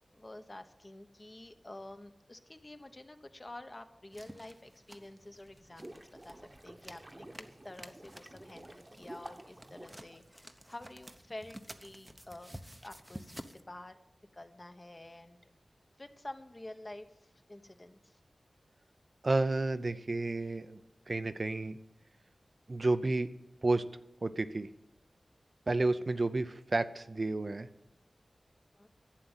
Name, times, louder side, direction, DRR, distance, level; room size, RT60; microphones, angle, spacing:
voice 1, 0.1-12.6 12.8-14.0 14.3-15.5 16.0-18.2 28.7-28.9, left 1 dB, 30° left, 8 dB, 1.0 m, -49 dB
sound 1, 4.1-13.6, equal, 10° right, 0.8 m, -52 dB
sound 2, 5.5-10.8, right 1 dB, 25° right, 1.1 m, -51 dB
voice 2, 19.2-20.8 21.1-21.8 22.7-23.3 23.6-23.8 24.2-24.7 25.7-27.7, right 2 dB, 45° right, 11 dB, 0.6 m, -31 dB
11.5 x 8.4 x 9.1 m, 0.90 s
wide cardioid pair, 95°, 0 cm